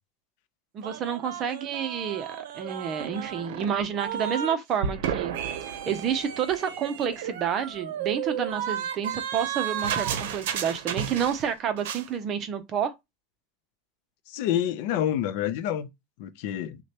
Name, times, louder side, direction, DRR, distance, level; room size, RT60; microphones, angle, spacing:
voice 1, 0.7-5.3 5.7-12.9, right 8 dB, 30° right, 0.6 m, -29 dB
sound 1, 0.8-4.6 4.8-11.5 11.8-12.1, right 9 dB, 75° right, 0.6 m, -33 dB
voice 2, 14.3-15.9 16.2-16.8, left 10 dB, 55° left, 0.5 m, -28 dB
6.2 x 2.2 x 2.9 m
supercardioid pair, 165°, 0 cm